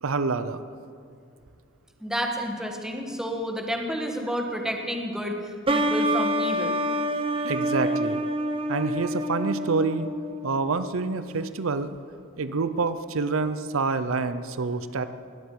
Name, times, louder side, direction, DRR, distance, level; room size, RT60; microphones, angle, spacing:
voice 1, 0.0-0.6 7.4-8.2 8.7-10.1 10.4-11.9 12.4-15.1, right 4 dB, 90° right, 12 dB, 0.7 m, -27 dB
voice 2, 2.0-5.4 5.7-6.8, equal, 5° right, 2 dB, 1.6 m, -30 dB
sound 1, 5.7-11.1, equal, 25° right, 0.9 m, -27 dB
20.0 x 8.0 x 8.4 m, 2.3 s
head